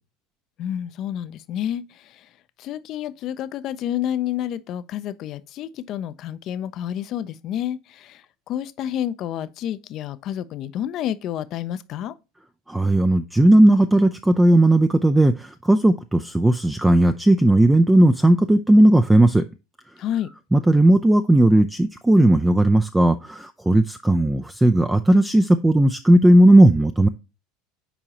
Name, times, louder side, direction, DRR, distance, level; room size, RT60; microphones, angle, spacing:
voice 1, 0.6-2.3 2.6-12.1 20.0-20.3, left 11 dB, 50° left, 0.5 m, -29 dB
voice 2, 12.7-19.4 20.5-27.1, right 1 dB, 10° right, 0.4 m, -16 dB
7.0 x 4.8 x 2.8 m
hypercardioid pair, 75°, 0 cm